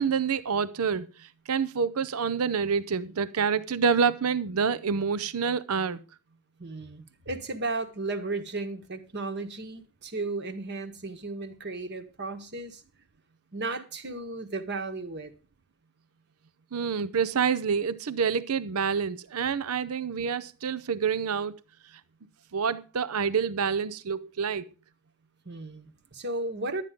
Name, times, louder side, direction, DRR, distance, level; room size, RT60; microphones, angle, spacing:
voice 1, 0.0-6.0 16.7-21.5 22.5-24.7, right 6 dB, 75° right, 0.6 m, -27 dB
voice 2, 6.6-12.8 13.5-15.3 25.4-26.8, right 2 dB, 50° right, 1.5 m, -34 dB
12.0 x 9.1 x 5.1 m
head